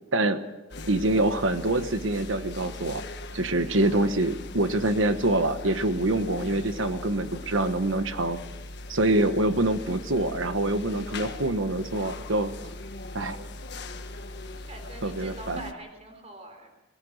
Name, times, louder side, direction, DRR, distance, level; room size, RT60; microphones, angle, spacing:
sound 1, 0.7-15.7, left 2 dB, 55° left, 1.5 m, -40 dB
voice 1, 0.9-3.0 3.3-8.4 8.9-12.5 13.1-13.4 15.0-15.6, right 2 dB, 75° right, 10 dB, 1.2 m, -25 dB
voice 2, 14.5-16.7, right 2 dB, 35° right, 4 dB, 3.7 m, -43 dB
23.5 x 17.5 x 6.5 m, 1.1 s
head